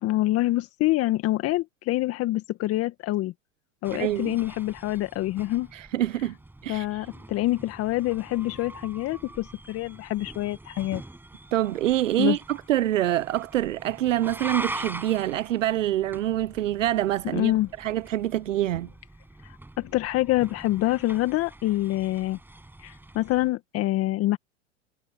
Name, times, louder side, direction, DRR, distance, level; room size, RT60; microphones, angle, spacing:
voice 1, 0.0-3.3 3.8-5.7 6.7-11.0 12.2-12.4 17.3-17.7 19.8-22.4 22.8-24.4, left 16 dB, 40° left, 1.8 m, -26 dB
sound 1, 3.8-23.5, right 2 dB, 5° right, 6.4 m, -43 dB
voice 2, 3.9-4.4 5.7-6.4 6.6-7.0 11.5-17.5 17.8-18.9, right 13 dB, 80° right, 0.7 m, -26 dB
hypercardioid pair, 100°, 37 cm